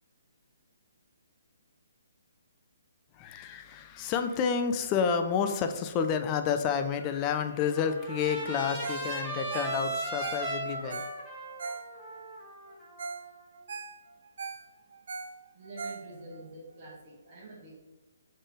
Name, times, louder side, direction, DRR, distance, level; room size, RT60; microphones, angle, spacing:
voice 1, 3.1-11.1, left 6 dB, 25° left, 7 dB, 0.4 m, -30 dB
Trumpet, 7.3-13.4, right 1 dB, ahead, 1.4 m, -37 dB
Ringtone, 8.8-9.1 9.4-12.2 12.7-12.8 13.0-13.3 13.5-16.4 16.9-17.0, right 4 dB, 60° right, 0.4 m, -40 dB
voice 2, 15.5-17.8, right 2 dB, 40° right, -4 dB, 1.1 m, -46 dB
3.6 x 3.4 x 3.8 m, 1.1 s
figure-of-eight pair, 135°, 0 cm